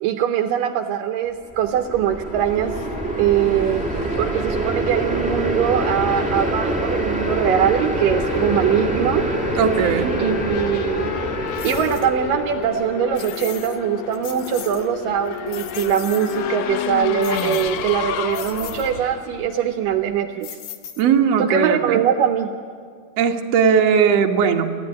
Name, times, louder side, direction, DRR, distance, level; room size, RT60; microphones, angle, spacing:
voice 1, 0.0-2.8 3.2-3.8 4.2-9.3 10.2-11.2 11.6-20.5 21.4-22.5, right 9 dB, 75° right, 6 dB, 2.3 m, -22 dB
sound 1, 1.5-12.9, right 2 dB, 10° right, 0.3 m, -25 dB
Race car auto racing / Accelerating revving vroom, 2.0-20.2, left 9 dB, 85° left, 1.5 m, -31 dB
voice 2, 9.6-10.2 21.0-22.0 23.2-24.8, right 7 dB, 55° right, 2 dB, 2.1 m, -18 dB
sound 2, 11.6-12.1 13.2-13.8 14.1-14.9 15.3-16.4 17.2-17.9 18.3-18.9 20.4-21.3, left 10 dB, 65° left, 2.7 m, -37 dB
30.0 x 14.5 x 9.6 m, 2.1 s
omnidirectional pair, 4.2 m